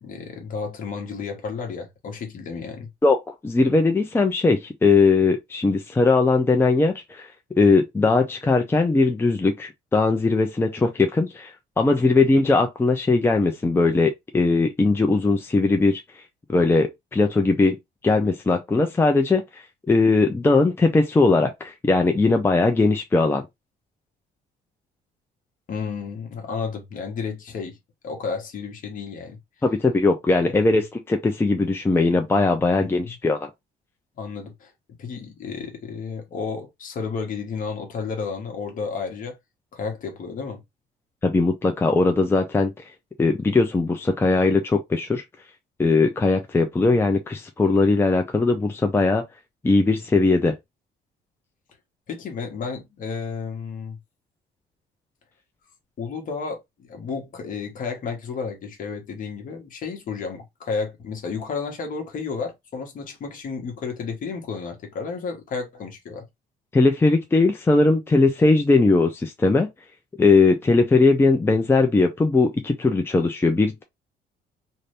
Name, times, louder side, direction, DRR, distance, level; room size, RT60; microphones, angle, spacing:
voice 1, 0.0-2.9 25.7-27.8 28.0-29.7 30.5-30.6 32.8-33.2 34.2-39.4 39.7-40.6 52.1-54.0 56.0-66.3, left 5 dB, 55° left, 1.2 m, -32 dB
voice 2, 3.0-7.3 7.6-16.0 16.5-17.8 18.0-23.4 29.6-33.5 41.2-42.7 43.2-45.2 45.8-49.2 49.6-50.6 66.7-69.7 70.2-73.8, left 3 dB, 15° left, 0.5 m, -19 dB
2.7 x 2.6 x 3.2 m
cardioid pair, 110°, 17 cm